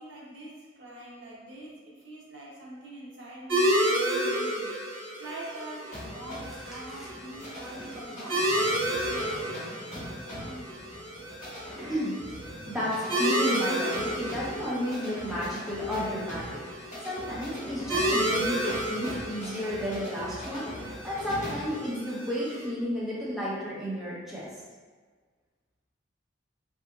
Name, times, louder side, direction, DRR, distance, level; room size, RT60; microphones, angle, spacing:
voice 1, 0.0-9.7 10.0-10.9, right 1 dB, 65° right, -4 dB, 0.7 m, -44 dB
sound 1, 3.5-22.6, right 1 dB, 80° right, 1.1 m, -32 dB
sound 2, 5.9-21.8, equal, 40° left, 1.1 m, -42 dB
voice 2, 11.7-12.2 12.7-16.6 17.0-20.7 21.0-24.5, equal, ahead, -8 dB, 0.6 m, -32 dB
3.4 x 2.8 x 2.3 m, 1.5 s
head